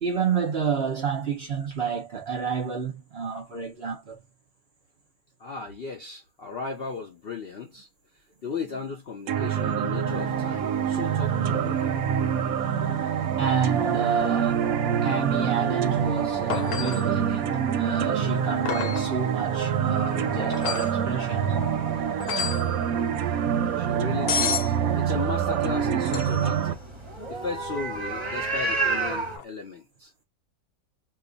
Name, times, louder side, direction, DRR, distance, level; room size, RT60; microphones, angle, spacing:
voice 1, 0.0-4.2 13.2-14.7 15.0-21.6, right 6 dB, 50° right, 0.9 m, -29 dB
voice 2, 5.4-7.9 8.4-11.9 23.8-26.8 27.3-30.1, left 5 dB, 60° left, 0.6 m, -36 dB
sound 1, 9.3-26.7, right 8 dB, 70° right, 0.9 m, -26 dB
sound 2, 10.0-29.4, right 3 dB, 20° right, 0.8 m, -36 dB
sound 3, 16.5-17.1 18.7-19.1 20.5-21.0 22.2-22.7 24.3-24.7 26.1-26.5 29.3-29.4, left 7 dB, 75° left, 1.2 m, -30 dB
2.6 x 2.4 x 3.8 m
omnidirectional pair, 1.7 m